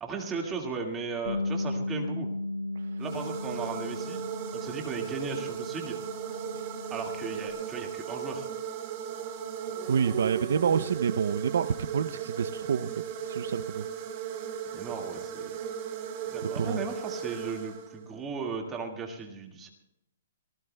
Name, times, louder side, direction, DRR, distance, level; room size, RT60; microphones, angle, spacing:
voice 1, 0.0-2.3 3.0-4.2 4.5-6.0 6.9-8.5 14.7-15.6 16.2-19.7, right 4 dB, 15° right, 2 dB, 1.9 m, -36 dB
Bass guitar, 1.3-7.5, left 2 dB, 85° left, 7.6 m, -36 dB
sound 1, 3.0-18.2, right 8 dB, 30° right, 1.9 m, -37 dB
voice 2, 9.9-12.9 13.2-13.8 16.6-16.8, right 7 dB, 70° right, 11 dB, 0.5 m, -28 dB
28.0 x 19.0 x 2.2 m, 0.86 s
hypercardioid pair, 165°, 0 cm